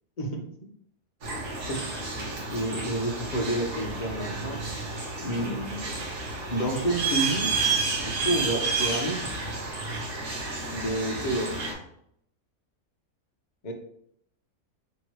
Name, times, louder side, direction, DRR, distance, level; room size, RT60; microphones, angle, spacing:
sound 1, 1.2-11.7, right 4 dB, 85° right, 1.7 m, -31 dB
voice 1, 2.5-4.6 5.2-6.0 6.5-7.6 7.9-9.3 10.7-11.5 13.6-13.7, right 1 dB, 40° left, 1 dB, 0.7 m, -29 dB
3.6 x 3.0 x 4.5 m, 0.71 s
omnidirectional pair, 1.6 m